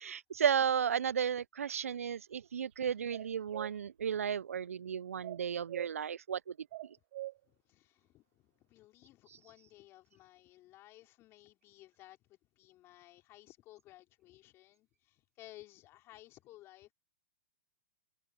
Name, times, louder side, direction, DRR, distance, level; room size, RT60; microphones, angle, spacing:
voice 1, 0.0-6.5, right 8 dB, 80° right, 0.4 m, -34 dB
sound 1, 3.1-3.7 5.2-5.9 6.7-7.4, right 16 dB, 55° right, 0.8 m, -43 dB
voice 2, 7.4-16.9, left 16 dB, 35° left, 3.4 m, -58 dB
hypercardioid pair, 115°, 8 cm